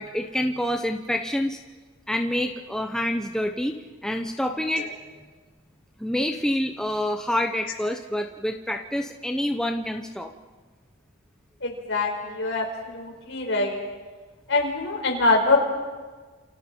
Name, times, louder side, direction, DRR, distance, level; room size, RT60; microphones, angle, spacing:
voice 1, 0.0-1.6 2.1-4.9 6.0-10.3, left 1 dB, 5° left, 4 dB, 0.9 m, -27 dB
voice 2, 11.6-13.8 14.5-15.6, left 3 dB, 60° left, 1 dB, 5.0 m, -24 dB
29.0 x 28.5 x 4.6 m, 1.4 s
head